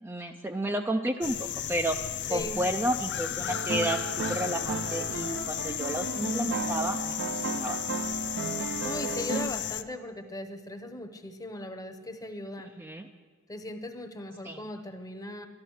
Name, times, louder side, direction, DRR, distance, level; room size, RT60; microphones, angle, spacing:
voice 1, 0.0-2.0 2.3-7.8 12.6-13.1 14.4-14.6, right 1 dB, 10° right, 4 dB, 0.4 m, -32 dB
sound 1, 1.2-9.8, left 11 dB, 55° left, 0.4 m, -34 dB
voice 2, 2.3-2.6 8.8-12.7 13.5-15.5, left 1 dB, 15° left, 7 dB, 0.9 m, -38 dB
sound 2, 3.5-9.7, right 3 dB, 55° right, 0.6 m, -34 dB
12.5 x 11.5 x 6.4 m, 1.5 s
head